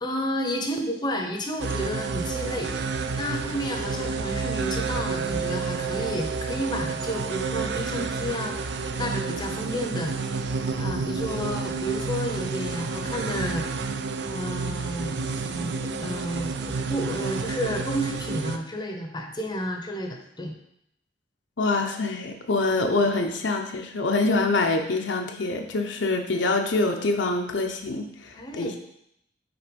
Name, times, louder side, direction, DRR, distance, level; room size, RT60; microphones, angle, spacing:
voice 1, 0.0-2.8 3.2-10.1 10.8-13.7 14.3-15.2 15.4-15.7 16.0-20.5 28.3-28.8, equal, 25° left, 2 dB, 0.8 m, -31 dB
sound 1, 1.6-18.6, right 4 dB, 65° right, 0.5 m, -30 dB
voice 2, 21.6-28.8, left 3 dB, 70° left, 3 dB, 0.8 m, -25 dB
6.0 x 4.2 x 5.2 m, 0.76 s
head